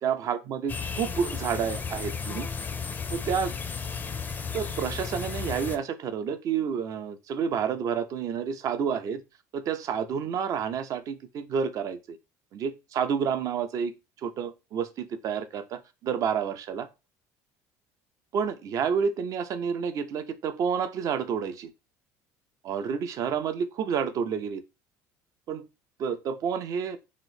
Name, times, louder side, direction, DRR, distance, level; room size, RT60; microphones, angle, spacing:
voice 1, 0.0-2.5 3.1-3.5 4.5-9.2 9.5-12.2 12.5-13.9 14.2-16.9 18.3-21.7 22.6-24.6 25.5-25.7 26.0-27.0, right 7 dB, 50° right, 0.5 m, -29 dB
sound 1, 0.7-5.8, left 5 dB, 25° left, 0.4 m, -34 dB
2.9 x 2.0 x 4.1 m
supercardioid pair, 100°, 7 cm